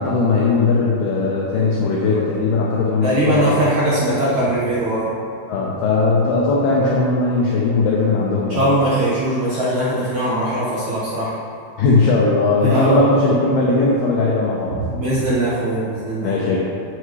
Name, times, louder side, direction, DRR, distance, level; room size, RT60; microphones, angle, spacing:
voice 1, 0.0-3.5 5.5-8.6 11.8-14.8 16.2-16.6, left 3 dB, 75° left, -5 dB, 2.4 m, -18 dB
voice 2, 3.0-5.1 8.5-11.3 12.6-13.0 14.7-16.3, right 1 dB, 80° right, -9 dB, 1.6 m, -20 dB
15.5 x 6.4 x 3.2 m, 2.4 s
omnidirectional pair, 5.7 m